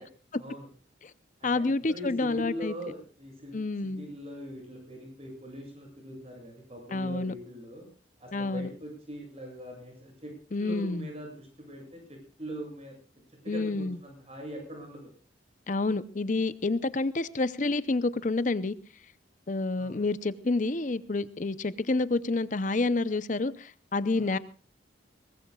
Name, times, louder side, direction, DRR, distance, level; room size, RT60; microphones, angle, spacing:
voice 1, 0.3-0.7 1.4-7.9 8.2-13.0 13.4-15.1 19.7-20.0 24.1-24.3, equal, 30° right, 7.6 m, -42 dB
voice 2, 1.4-2.7 3.5-4.1 6.9-7.3 8.3-8.7 10.5-11.1 13.5-14.0 15.7-18.7 19.5-24.4, left 3 dB, 40° left, 0.6 m, -28 dB
23.0 x 19.5 x 2.4 m
head